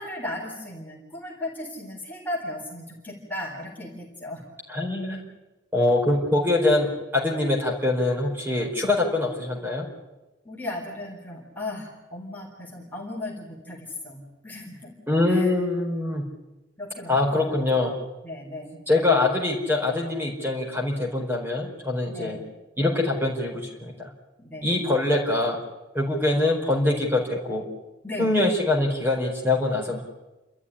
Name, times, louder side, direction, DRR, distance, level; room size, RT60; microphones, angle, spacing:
voice 1, 0.0-4.4 10.4-14.9 15.3-15.5 16.8-17.5 18.2-18.8 22.1-22.5 24.4-24.7 28.0-28.4, left 1 dB, 10° left, -3 dB, 3.9 m, -36 dB
voice 2, 4.7-5.3 5.7-9.9 15.1-16.3 17.1-17.9 18.9-22.4 22.8-24.1 24.6-25.6 25.9-27.6 28.2-30.1, left 2 dB, 10° right, 0 dB, 4.6 m, -24 dB
29.5 x 13.5 x 9.9 m, 1.1 s
head